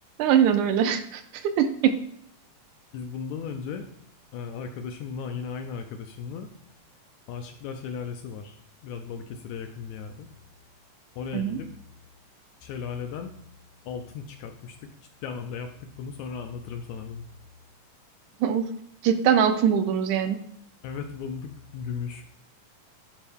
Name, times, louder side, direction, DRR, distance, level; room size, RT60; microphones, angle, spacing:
voice 1, 0.2-2.0 11.3-11.6 18.4-18.7 19.0-20.4, right 8 dB, 80° right, 8 dB, 1.9 m, -22 dB
voice 2, 2.9-3.9 4.3-6.5 7.3-10.3 11.2-11.7 12.6-13.4 13.8-14.9 15.2-17.3 20.8-22.3, left 6 dB, 80° left, 6 dB, 1.7 m, -36 dB
11.5 x 4.5 x 3.5 m, 0.69 s
omnidirectional pair, 3.7 m